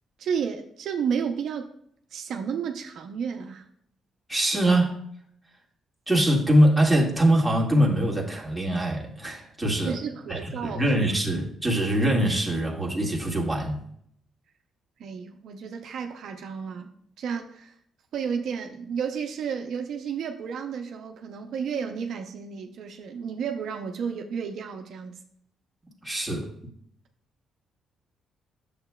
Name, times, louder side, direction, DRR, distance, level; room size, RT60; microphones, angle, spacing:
voice 1, 0.2-1.7 2.1-3.6 9.9-10.8 15.0-16.9 17.2-17.7 18.1-25.2, right 7 dB, 70° right, 0.6 m, -32 dB
voice 2, 4.3-4.9 6.1-10.0 10.3-13.8 26.0-26.5, right 1 dB, 5° right, 1.8 m, -23 dB
8.6 x 6.9 x 2.3 m
cardioid pair, 90°, 0 cm